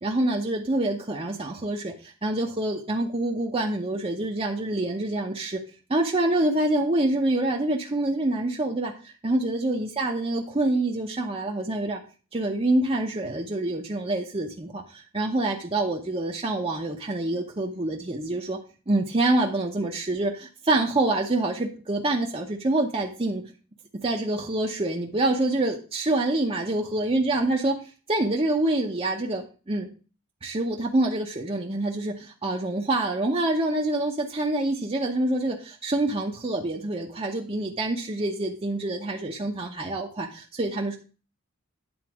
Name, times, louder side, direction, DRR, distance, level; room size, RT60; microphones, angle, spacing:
voice 1, 0.0-5.6 5.9-12.0 12.3-18.6 18.9-23.4 23.9-27.8 28.1-29.9 30.4-41.0, right 2 dB, 25° right, 0 dB, 0.9 m, -26 dB
9.6 x 4.1 x 6.1 m, 0.35 s
head